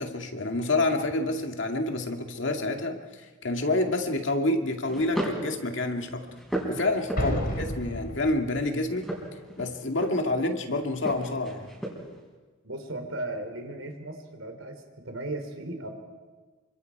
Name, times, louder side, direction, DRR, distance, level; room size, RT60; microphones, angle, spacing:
voice 1, 0.0-6.3 6.6-7.3 7.8-9.1 9.6-11.7, left 2 dB, 65° left, 3 dB, 2.2 m, -28 dB
sound 1, 3.7-4.0 4.8-5.5 6.0-7.6 8.9-10.4 11.0-12.2, right 1 dB, ahead, 5.0 m, -35 dB
voice 2, 7.1-7.6 12.6-15.9, right 1 dB, 80° right, 5 dB, 3.6 m, -36 dB
Explosion, 7.2-8.8, equal, 45° left, 2.7 m, -32 dB
27.5 x 25.5 x 4.8 m, 1.4 s
head